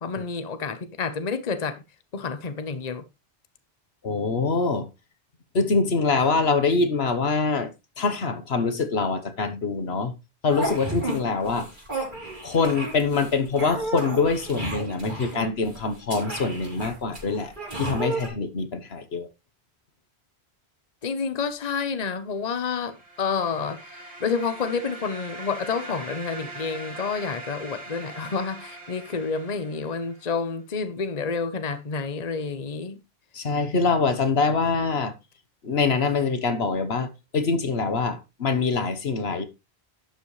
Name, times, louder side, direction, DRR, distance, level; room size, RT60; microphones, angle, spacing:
voice 1, 0.0-1.8 2.1-3.0 21.0-33.0, left 5 dB, 40° left, 1.0 m, -29 dB
voice 2, 4.0-4.9 5.5-7.7 8.0-10.1 10.4-11.7 12.4-19.3 33.3-35.1 35.6-37.1 37.3-39.4, left 4 dB, 75° left, 1.4 m, -24 dB
sound 1, 10.5-11.2 11.4-18.3, right 2 dB, 50° right, 4.2 m, -33 dB
sound 2, 22.6-30.3, right 2 dB, 85° right, 5.0 m, -41 dB
11.5 x 8.1 x 3.2 m
omnidirectional pair, 1.1 m